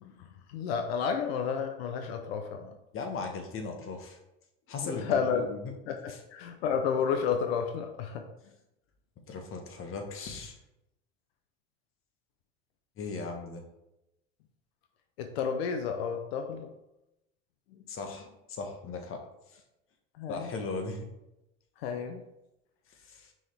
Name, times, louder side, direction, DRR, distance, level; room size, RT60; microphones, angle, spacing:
voice 1, 0.2-2.7 4.8-5.5 5.9-8.3 15.2-16.7 20.2-20.5 21.8-22.2, left 6 dB, 90° left, 6 dB, 0.7 m, -31 dB
voice 2, 2.9-4.2 4.7-5.7 6.1-6.2 9.3-10.6 13.0-13.7 17.9-19.6 20.3-21.1 23.0-23.3, left 4 dB, 45° left, 4 dB, 1.3 m, -38 dB
5.8 x 4.9 x 3.4 m, 0.90 s
supercardioid pair, 105°, 30 cm